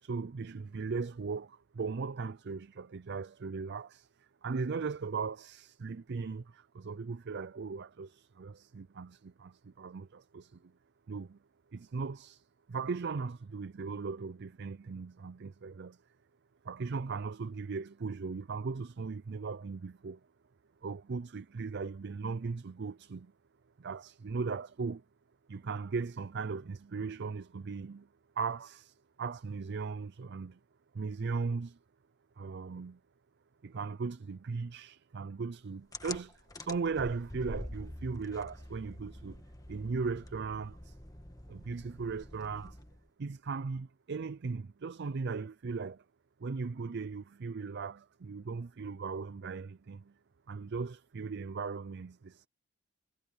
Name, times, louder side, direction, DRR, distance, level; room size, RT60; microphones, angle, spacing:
voice 1, 0.0-10.7 11.1-11.4 11.7-16.0 16.6-20.2 20.8-23.3 23.8-25.0 25.5-28.1 28.4-30.6 30.9-31.8 32.4-33.0 33.6-39.4 39.7-41.0 41.5-42.8 43.2-46.0 46.4-50.1 50.5-52.5, right 4 dB, 50° right, 0.5 m, -38 dB
sound 1, 35.9-43.1, left 1 dB, 15° left, 1.4 m, -46 dB
head